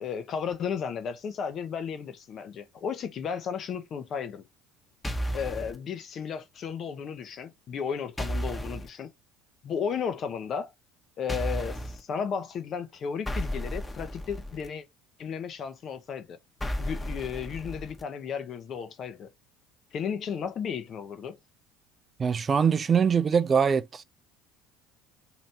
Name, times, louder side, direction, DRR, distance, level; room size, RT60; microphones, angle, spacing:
voice 1, 0.0-4.4 5.3-9.1 9.6-10.7 11.2-14.8 15.2-16.4 16.8-19.3 19.9-21.4, left 7 dB, 45° left, 0.8 m, -34 dB
sound 1, 5.0-5.8 8.2-8.9 11.3-12.0 13.3-14.7 16.6-18.0, equal, 15° left, 1.0 m, -33 dB
voice 2, 22.2-24.0, right 6 dB, 30° right, 0.3 m, -23 dB
3.2 x 2.9 x 4.0 m
figure-of-eight pair, 65°, 0 cm